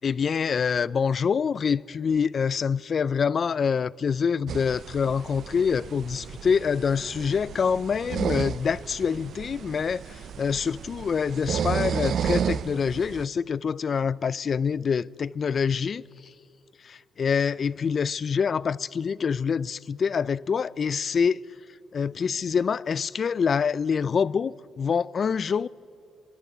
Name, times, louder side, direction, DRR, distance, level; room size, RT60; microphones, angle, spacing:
voice 1, 0.0-16.0 16.8-21.4 21.9-25.7, left 6 dB, 45° left, 0.4 m, -26 dB
sound 1, 4.5-13.2, right 8 dB, 60° right, 0.6 m, -32 dB
26.0 x 11.5 x 9.6 m
cardioid pair, 90°, 0 cm